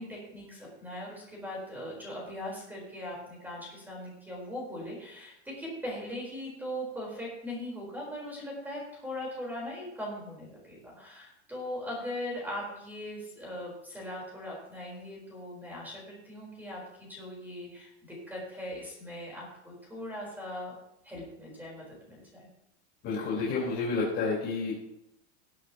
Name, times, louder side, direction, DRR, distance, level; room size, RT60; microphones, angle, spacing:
voice 1, 0.0-16.8 17.1-20.7 21.0-22.5, left 1 dB, 5° right, -3 dB, 4.1 m, -40 dB
voice 2, 23.0-24.7, left 4 dB, 35° left, -7 dB, 4.3 m, -30 dB
20.5 x 8.7 x 3.0 m, 0.79 s
supercardioid pair, 165°, 34 cm